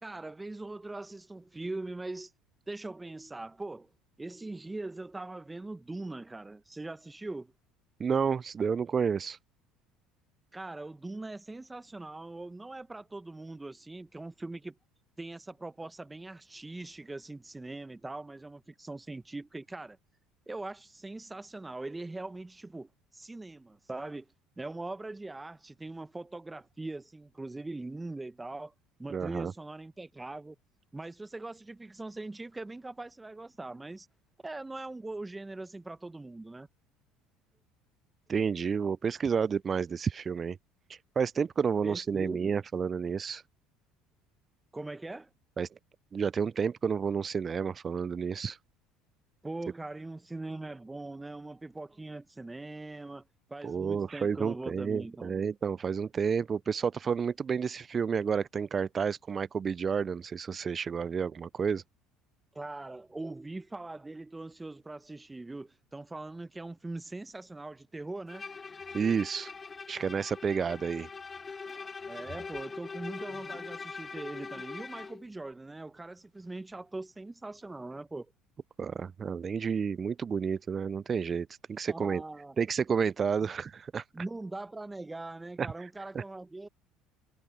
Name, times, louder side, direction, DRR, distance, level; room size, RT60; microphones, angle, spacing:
voice 1, 0.0-2.3 2.7-3.9 4.2-7.5 10.5-14.7 15.2-20.0 20.5-24.3 24.6-28.7 29.0-30.6 30.9-34.1 34.4-36.7 41.8-42.6 44.7-45.3 49.4-55.4 62.5-68.5 72.1-78.3 81.9-82.6 84.1-86.7, right 2 dB, 15° right, 0.9 m, -41 dB
voice 2, 8.0-9.4 29.1-29.5 38.3-40.6 40.9-43.4 45.6-45.7 46.1-48.6 53.6-61.8 68.9-69.5 69.9-71.1 78.8-82.2 82.6-84.0 85.6-85.7 86.1-86.2, right 6 dB, 35° right, 0.3 m, -30 dB
Bowed string instrument, 68.3-75.2, left 4 dB, 25° left, 1.0 m, -42 dB
supercardioid pair, 80°, 0 cm